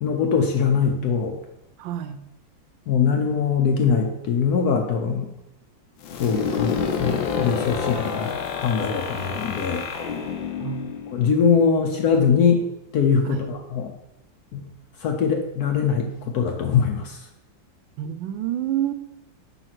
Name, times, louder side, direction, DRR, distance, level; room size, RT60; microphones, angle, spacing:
voice 1, 0.0-1.4 2.9-5.3 6.2-9.9 11.1-12.6 12.9-13.9 14.5-14.7 15.0-17.3, left 6 dB, 65° left, 3 dB, 1.1 m, -22 dB
voice 2, 1.8-2.2 10.6-10.9 13.3-13.5 18.0-18.9, right 11 dB, 85° right, 10 dB, 1.3 m, -28 dB
sound 1, 6.0-11.7, left 6 dB, 85° left, 1.5 m, -28 dB
5.1 x 4.0 x 5.9 m, 0.86 s
omnidirectional pair, 2.0 m